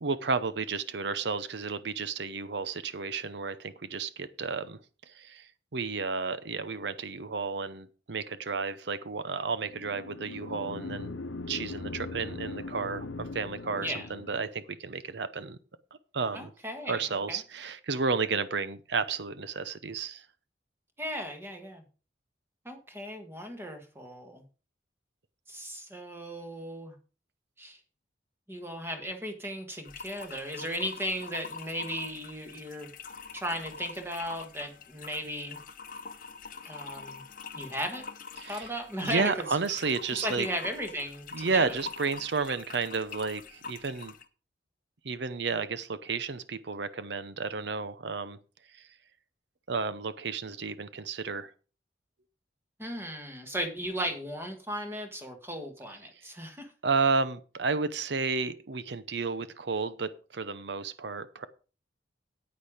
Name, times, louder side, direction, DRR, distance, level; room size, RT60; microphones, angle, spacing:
voice 1, 0.0-4.8 5.1-11.1 11.5-15.6 16.1-16.5 16.9-20.2 38.4-38.7 39.0-40.5 41.3-44.1 45.0-48.4 48.7-48.9 49.7-51.5 56.8-61.5, right 4 dB, 65° right, 0.7 m, -32 dB
sound 1, 9.6-14.6, left 3 dB, 85° left, 0.9 m, -40 dB
voice 2, 16.3-17.4 21.0-21.8 22.7-24.4 25.5-27.0 27.6-27.8 28.5-32.9 33.3-35.6 36.7-37.2 37.6-38.0 38.5-39.5 40.1-41.8 52.8-56.7, equal, 10° right, 1.6 m, -36 dB
sound 2, 29.8-44.3, left 5 dB, 45° left, 0.9 m, -45 dB
9.9 x 8.8 x 5.0 m
head